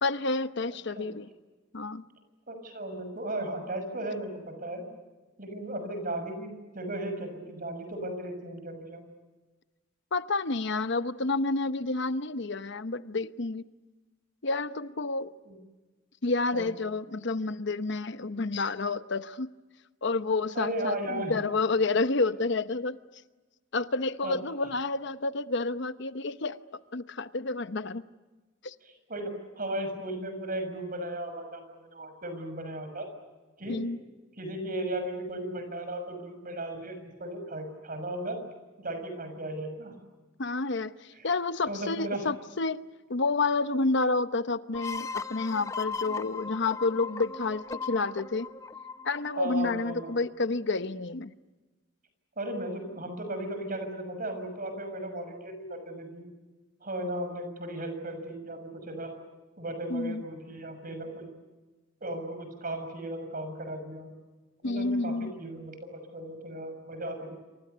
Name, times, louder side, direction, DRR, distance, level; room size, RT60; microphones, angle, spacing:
voice 1, 0.0-1.3 1.7-2.0 10.1-13.6 14.4-15.3 16.2-19.5 20.0-23.0 23.7-26.6 26.9-28.1 28.6-28.7 33.7-34.0 40.4-48.5 49.0-51.3 59.9-60.2 64.6-65.3, left 3 dB, 65° left, 0.9 m, -29 dB
voice 2, 2.5-4.8 5.4-9.0 15.5-15.6 16.5-16.7 20.5-21.4 24.2-24.4 28.8-33.1 33.6-33.8 34.4-38.4 38.8-39.9 41.1-41.3 41.7-42.2 49.4-50.2 52.4-56.2 56.8-59.1 59.6-61.3 62.0-64.1 64.6-67.4, right 1 dB, 45° right, 6.4 m, -36 dB
sound 1, 44.7-50.2, left 5 dB, 15° left, 0.7 m, -38 dB
28.0 x 26.0 x 6.8 m
head